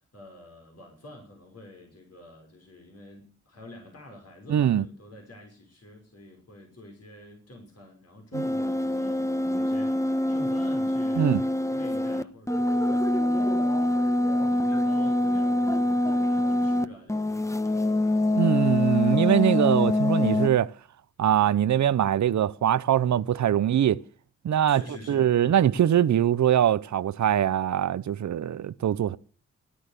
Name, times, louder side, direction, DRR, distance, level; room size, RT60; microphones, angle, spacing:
voice 1, 0.0-18.0 24.7-25.7, left 1 dB, 55° left, 5.8 m, -47 dB
voice 2, 4.5-4.8 8.4-8.5 11.2-11.4 18.3-20.7 21.2-24.0 24.4-24.8 25.1-29.2, right 10 dB, 70° right, 0.7 m, -22 dB
sound 1, 8.3-16.8 17.1-20.5, left 1 dB, 10° left, 1.3 m, -25 dB
17.0 x 12.0 x 6.7 m
cardioid pair, 55°, 29 cm